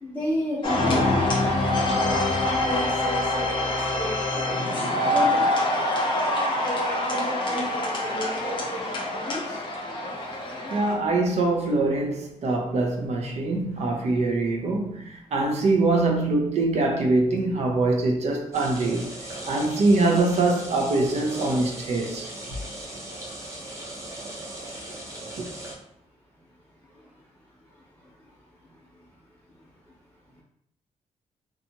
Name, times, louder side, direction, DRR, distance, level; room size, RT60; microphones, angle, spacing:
voice 1, 0.0-1.2 1.8-4.2 5.1-5.6 6.6-9.6, left 1 dB, 10° left, 0.8 m, -33 dB
sound 1, 0.6-10.9, left 1 dB, 40° left, 0.6 m, -25 dB
voice 2, 10.7-19.1 19.5-22.3 24.5-24.6 25.4-25.5, right 2 dB, 65° right, 0.5 m, -23 dB
sound 2, 18.5-25.7, right 1 dB, 25° right, 0.6 m, -37 dB
2.7 x 2.3 x 2.7 m
wide cardioid pair, 155°, 12 cm